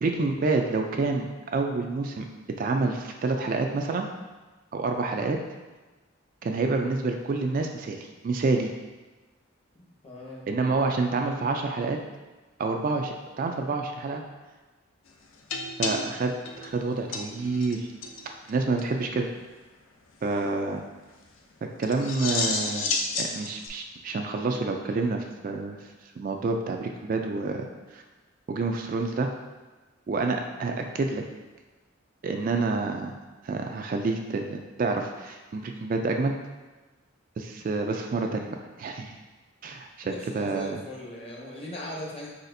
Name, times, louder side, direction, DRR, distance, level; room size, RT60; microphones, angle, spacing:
voice 1, 0.0-1.3 1.5-2.3 2.6-4.1 4.7-5.4 6.4-8.7 10.5-12.0 12.6-14.2 15.8-17.9 18.5-19.3 20.2-20.8 21.6-22.9 23.2-25.8 26.2-27.7 27.9-28.0 28.5-29.3 30.1-31.2 32.2-33.1 33.4-36.3 37.4-38.5 38.8-39.2 39.6-40.8, right 3 dB, 45° right, 3 dB, 0.3 m, -28 dB
voice 2, 10.0-10.4 18.8-18.9 40.1-42.3, left 1 dB, 30° left, -3 dB, 0.9 m, -39 dB
sound 1, 15.5-17.8 18.0-18.2 18.5-18.6 18.8-18.9 21.8-23.7, left 4 dB, 75° left, 0.5 m, -31 dB
4.9 x 4.0 x 2.6 m, 1.2 s
head